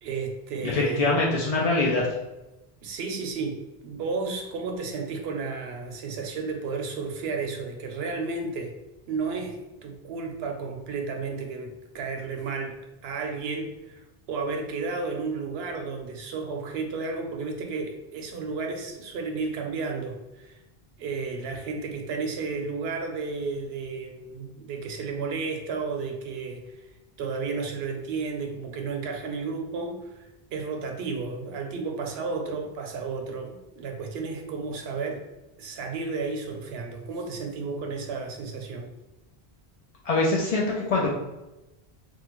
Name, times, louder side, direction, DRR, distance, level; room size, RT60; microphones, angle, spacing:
voice 1, 0.0-1.2 2.8-8.8 9.1-9.6 9.8-20.6 21.0-26.6 27.2-35.3 35.6-38.9, right 4 dB, 75° right, 3 dB, 0.8 m, -32 dB
voice 2, 0.6-2.1 40.0-41.1, left 2 dB, 55° left, -3 dB, 0.4 m, -23 dB
3.5 x 2.1 x 3.0 m, 1.0 s
omnidirectional pair, 1.1 m